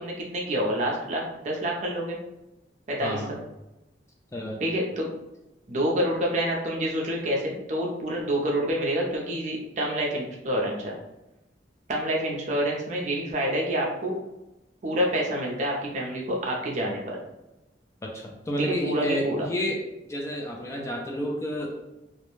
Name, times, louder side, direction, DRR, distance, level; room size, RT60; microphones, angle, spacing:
voice 1, 0.0-2.2 2.9-3.2 4.6-5.1 5.7-11.0 11.9-14.1 14.8-17.2 18.6-19.5, right 1 dB, 45° right, -2 dB, 0.5 m, -27 dB
voice 2, 3.0-3.3 4.3-4.6 18.0-19.8 20.1-21.7, equal, 15° left, -1 dB, 0.3 m, -30 dB
2.4 x 2.1 x 3.0 m, 0.94 s
head